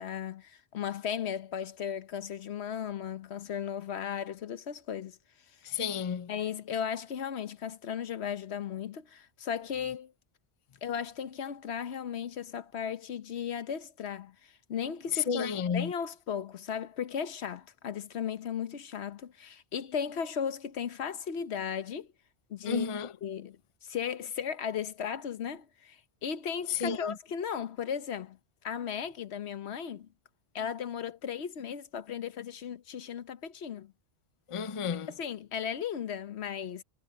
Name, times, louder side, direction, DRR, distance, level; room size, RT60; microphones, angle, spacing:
voice 1, 0.0-5.2 6.3-10.1 10.8-22.1 22.5-22.9 23.2-28.4 28.6-30.1 30.5-33.9 35.1-36.8, left 8 dB, 85° left, 1.2 m, -36 dB
voice 2, 5.6-6.3 15.1-15.9 22.7-23.1 26.7-27.2 34.5-35.1, left 6 dB, 35° left, 0.6 m, -31 dB
omnidirectional pair, 1.1 m